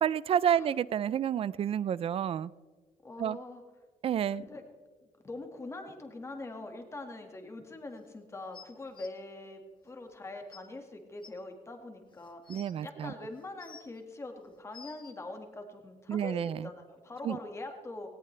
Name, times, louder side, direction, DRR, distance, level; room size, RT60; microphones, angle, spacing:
voice 1, 0.0-2.5 3.2-3.4 4.0-4.4 12.5-13.1 16.1-16.7 17.2-17.4, right 9 dB, 45° right, 19 dB, 0.4 m, -29 dB
voice 2, 3.0-3.6 4.4-4.6 5.2-18.1, left 2 dB, 20° left, 4 dB, 1.9 m, -43 dB
sound 1, 8.5-9.1 10.1-10.2 10.5-10.6 11.2-11.3 12.1-12.7 13.4-14.0 14.5-15.1 16.1-16.2, left 6 dB, 35° left, 1.1 m, -51 dB
18.5 x 18.0 x 3.3 m, 1.4 s
cardioid pair, 155°, 14 cm